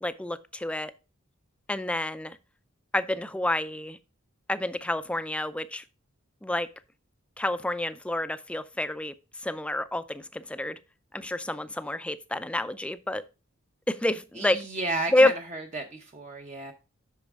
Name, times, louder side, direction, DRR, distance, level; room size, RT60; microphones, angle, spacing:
voice 1, 0.0-0.9 1.7-2.4 2.9-4.0 4.5-5.8 6.4-6.7 7.4-10.8 11.1-13.2 13.9-14.6 15.1-15.3, left 1 dB, 5° left, 0.4 m, -28 dB
voice 2, 14.3-16.7, right 2 dB, 35° right, 0.7 m, -33 dB
8.3 x 6.3 x 3.5 m
head